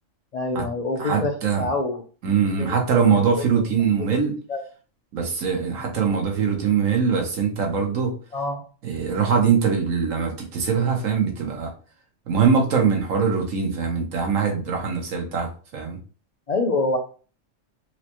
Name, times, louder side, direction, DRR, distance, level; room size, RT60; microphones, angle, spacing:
voice 1, 0.3-1.3 1.6-2.7 3.1-3.5 4.0-4.1 4.5-4.6 8.3-8.6 16.5-17.0, left 2 dB, 65° left, 1 dB, 0.4 m, -26 dB
voice 2, 1.0-1.7 2.2-4.4 5.1-8.1 8.8-11.7 12.3-16.0, right 6 dB, 90° right, 2 dB, 1.3 m, -22 dB
4.6 x 2.1 x 2.9 m, 0.38 s
omnidirectional pair, 1.3 m